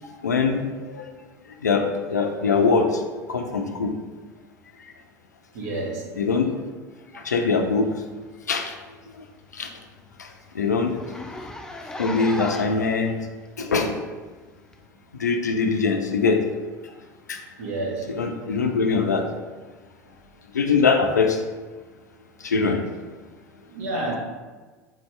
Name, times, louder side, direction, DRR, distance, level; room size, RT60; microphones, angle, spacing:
voice 1, 0.2-0.6 0.9-1.0 1.6-3.0 3.3-3.9 6.2-6.5 7.1-7.9 8.5-8.7 9.5-9.7 10.2-10.3 10.5-11.0 12.0-13.1 13.6-14.0 15.1-16.4 17.3-17.4 18.2-19.2 20.5-21.4 22.4-22.8, left 4 dB, 80° left, 5 dB, 0.4 m, -22 dB
voice 2, 5.5-6.1 17.6-18.1 23.6-24.2, right 2 dB, 60° right, -3 dB, 1.0 m, -29 dB
Zipper (clothing), 8.3-8.5 8.8-8.9 9.3-9.4 9.7-9.8 10.1-10.2 10.9-12.9 13.6-13.7 14.7-14.8, left 2 dB, 5° left, 0.3 m, -35 dB
4.0 x 2.7 x 3.2 m, 1.3 s
figure-of-eight pair, 75°, 9 cm